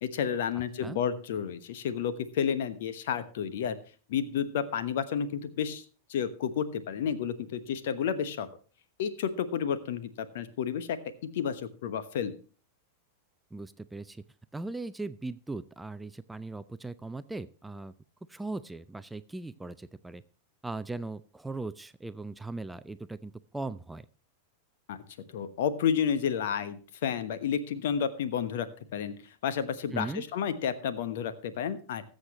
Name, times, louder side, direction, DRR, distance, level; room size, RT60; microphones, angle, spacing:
voice 1, 0.0-3.8 4.1-5.8 6.1-8.5 9.0-11.0 11.2-12.4 24.9-25.0 25.3-29.1 29.4-32.0, left 8 dB, 55° left, 12 dB, 1.1 m, -31 dB
voice 2, 13.5-14.2 14.5-17.9 18.3-20.2 20.6-24.0 29.9-30.2, right 3 dB, 5° right, 14 dB, 0.4 m, -39 dB
20.5 x 7.7 x 3.0 m, 0.38 s
figure-of-eight pair, 90°, 0 cm